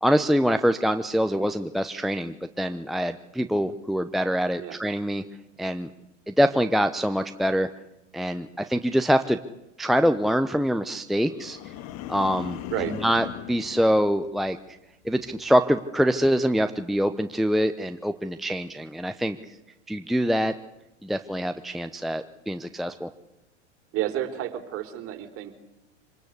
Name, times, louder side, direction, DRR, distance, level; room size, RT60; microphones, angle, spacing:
voice 1, 0.0-5.2 5.6-5.9 6.3-7.7 8.1-9.4 9.8-11.6 12.1-12.6 12.9-14.6 15.0-19.4 19.9-20.5 21.0-23.1, equal, ahead, 8 dB, 0.8 m, -24 dB
sound 1, 11.2-14.7 15.1-15.5, left 12 dB, 45° left, 1.9 m, -39 dB
voice 2, 23.9-25.5, right 12 dB, 40° right, 7 dB, 4.0 m, -30 dB
26.0 x 20.0 x 8.2 m, 0.90 s
hypercardioid pair, 105°, 36 cm